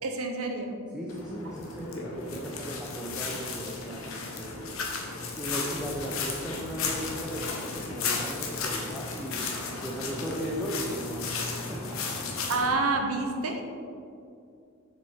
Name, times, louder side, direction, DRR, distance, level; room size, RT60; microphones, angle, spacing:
voice 1, 0.0-0.8 12.5-13.6, right 3 dB, 80° right, 4 dB, 0.9 m, -28 dB
voice 2, 0.9-4.7 5.4-9.5 9.8-12.2, equal, 5° right, -4 dB, 0.7 m, -37 dB
sound 1, 1.1-12.7, left 4 dB, 65° left, 1.1 m, -34 dB
6.7 x 6.6 x 4.4 m, 2.4 s
head